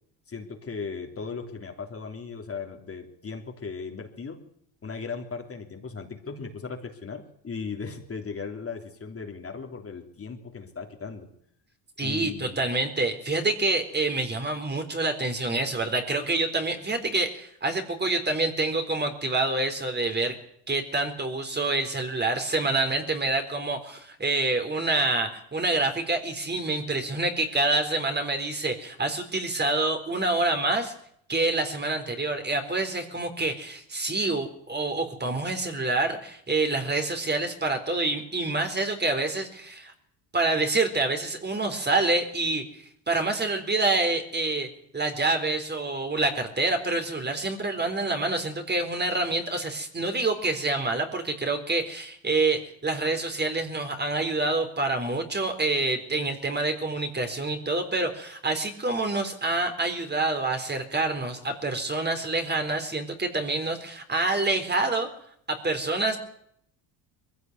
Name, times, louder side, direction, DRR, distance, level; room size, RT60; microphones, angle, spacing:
voice 1, 0.3-4.4 4.8-11.3 12.0-12.6, left 5 dB, 30° left, 3 dB, 3.4 m, -37 dB
voice 2, 12.0-20.4 20.7-30.9 31.3-39.9 40.3-42.6 43.1-44.7 44.9-65.1 65.5-66.2, right 2 dB, 20° right, 6 dB, 3.9 m, -27 dB
21.5 x 16.0 x 9.6 m, 0.70 s
supercardioid pair, 90°, 47 cm